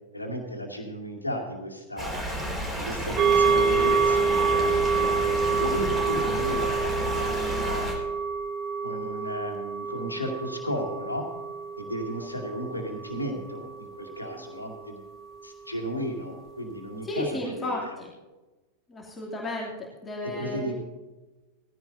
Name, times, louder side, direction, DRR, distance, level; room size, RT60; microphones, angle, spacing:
voice 1, 0.1-2.1 2.8-7.9 8.8-11.3 11.8-15.0 15.4-18.0 20.3-20.7, equal, 85° left, 1 dB, 2.4 m, -34 dB
sound 1, 2.0-7.9, equal, 10° right, 4.5 m, -31 dB
sound 2, 3.2-14.8 15.2-15.3, right 5 dB, 30° right, 1.0 m, -27 dB
voice 2, 17.0-18.1 18.9-19.7 20.0-20.7, left 1 dB, 15° left, -4 dB, 2.7 m, -33 dB
19.0 x 15.5 x 2.7 m, 1.2 s
figure-of-eight pair, 90°, 0 cm